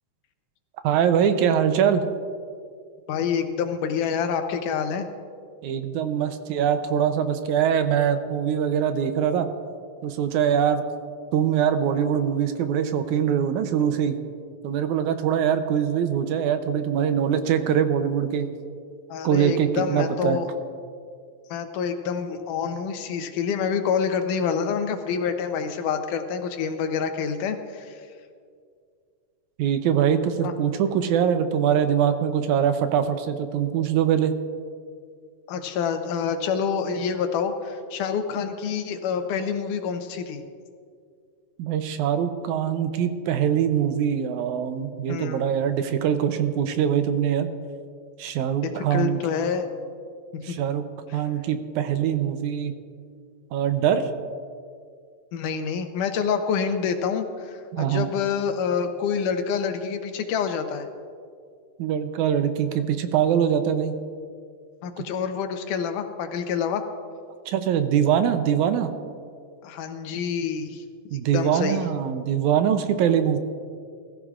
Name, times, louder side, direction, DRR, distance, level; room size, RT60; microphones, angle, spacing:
voice 1, 0.8-2.0 5.6-9.5 10.0-10.8 11.3-14.2 14.6-18.5 19.2-20.4 29.6-34.3 41.6-47.5 48.2-49.2 50.4-50.8 51.1-52.7 53.5-54.1 57.7-58.1 61.8-64.0 67.5-68.9 71.1-73.4, right 8 dB, 80° right, 8 dB, 2.1 m, -23 dB
voice 2, 3.1-5.1 19.1-20.5 21.5-28.1 30.4-30.5 35.5-40.4 45.1-45.5 48.8-49.7 50.5-50.6 55.3-60.9 64.8-66.8 69.6-70.8 71.3-71.9, left 6 dB, 85° left, 7 dB, 2.4 m, -27 dB
20.5 x 14.5 x 2.5 m, 2.2 s
omnidirectional pair, 3.5 m